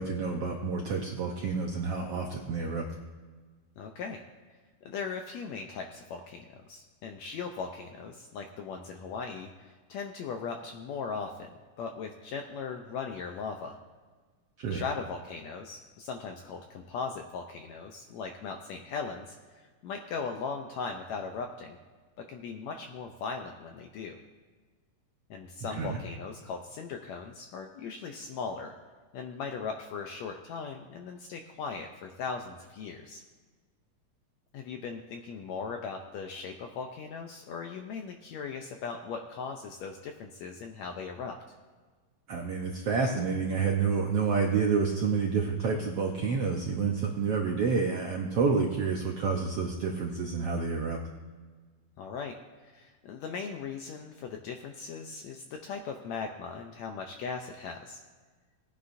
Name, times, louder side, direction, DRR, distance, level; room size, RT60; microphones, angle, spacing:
voice 1, 0.0-2.9 14.6-14.8 25.8-26.0 42.3-51.0, right 5 dB, 75° right, 1 dB, 1.4 m, -29 dB
voice 2, 3.8-4.2 4.9-11.5 11.8-13.8 14.7-21.8 22.2-24.2 25.3-28.7 29.1-33.2 34.5-41.4 52.0-52.3 52.6-58.0, left 5 dB, 75° left, 4 dB, 1.6 m, -38 dB
19.5 x 9.6 x 2.6 m, 1.4 s
omnidirectional pair, 3.8 m